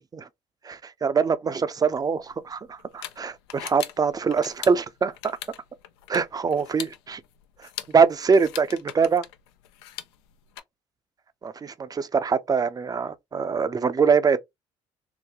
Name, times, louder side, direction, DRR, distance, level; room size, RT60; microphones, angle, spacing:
voice 1, 0.7-5.1 6.1-7.2 7.9-9.2 11.4-14.4, right 5 dB, 30° right, 0.5 m, -23 dB
sound 1, 1.9-10.6, left 12 dB, 85° left, 0.4 m, -42 dB
3.8 x 2.1 x 2.8 m
hypercardioid pair, 65°, 13 cm